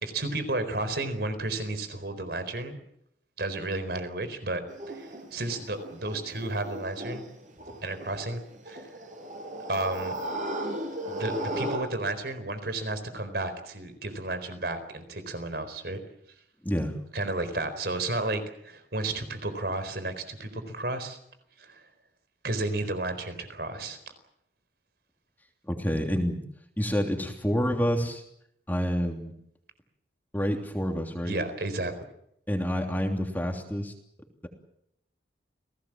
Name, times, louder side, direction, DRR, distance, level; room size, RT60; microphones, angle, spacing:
voice 1, 0.0-2.8 3.4-7.2 7.8-8.9 9.7-10.1 11.1-16.0 17.1-21.2 21.6-21.9 22.4-24.0 31.2-31.9, right 2 dB, 60° right, 11 dB, 4.3 m, -32 dB
sound 1, 4.7-11.8, right 1 dB, 45° right, 7.3 m, -35 dB
voice 2, 16.6-16.9 25.7-26.4 26.8-28.2 28.7-29.3 30.3-31.4 32.5-33.9, equal, 10° left, 3 dB, 3.1 m, -28 dB
29.0 x 18.5 x 7.6 m, 0.75 s
head